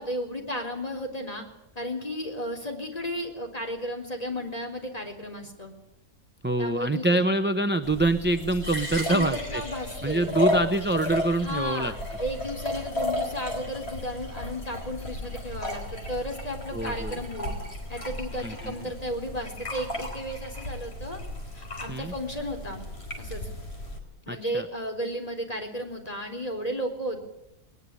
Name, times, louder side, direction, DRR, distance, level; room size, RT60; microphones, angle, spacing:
voice 1, 0.0-1.4 1.8-5.7 6.6-7.2 9.1-10.3 11.4-17.6 17.9-21.2 21.5-22.8 23.2-23.5 24.3-27.2, equal, 25° left, 3 dB, 4.2 m, -34 dB
voice 2, 6.4-9.6 10.0-11.9 16.7-17.2 18.4-18.7 21.9-22.1 24.3-24.6, right 2 dB, 10° right, 8 dB, 0.8 m, -25 dB
sound 1, 7.8-24.0, left 1 dB, 40° left, 4.9 m, -34 dB
20.5 x 20.5 x 9.8 m, 0.80 s
omnidirectional pair, 1.6 m